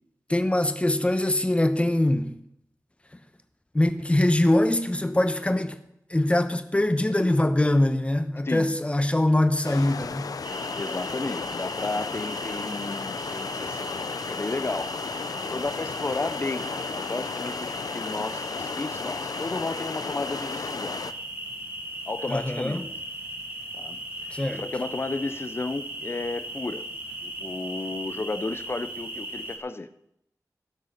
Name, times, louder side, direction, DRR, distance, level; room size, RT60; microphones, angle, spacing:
voice 1, 0.3-2.4 3.7-5.8 6.1-10.3 22.3-22.8 24.3-24.6, left 1 dB, 20° left, 1.1 m, -23 dB
sound 1, 9.6-21.1, left 5 dB, 75° left, 0.6 m, -34 dB
sound 2, 10.4-29.6, right 1 dB, 35° right, 2.6 m, -38 dB
voice 2, 10.8-13.9 14.3-14.9 15.3-21.0 22.1-22.8 23.7-24.0 24.6-26.9 27.2-29.9, left 3 dB, 40° left, 0.8 m, -33 dB
16.0 x 6.9 x 6.7 m
wide cardioid pair, 95°, 6 cm